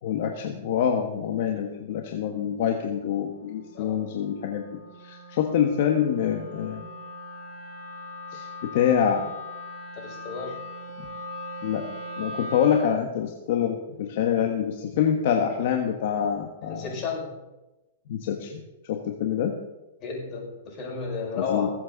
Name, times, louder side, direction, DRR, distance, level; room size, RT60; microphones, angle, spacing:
voice 1, 0.0-4.6 5.0-6.8 8.3-9.3 11.6-11.8 12.2-16.9 18.1-19.5 21.4-21.7, left 8 dB, 60° left, 3 dB, 1.4 m, -26 dB
Wind instrument woodwind instrument, 1.5-13.0, left 1 dB, 25° right, 4.8 m, -41 dB
voice 2, 9.9-10.6 16.6-17.3 20.0-21.7, left 5 dB, 35° left, -2 dB, 5.5 m, -33 dB
21.0 x 7.9 x 4.1 m, 1.0 s
hypercardioid pair, 140°, 0 cm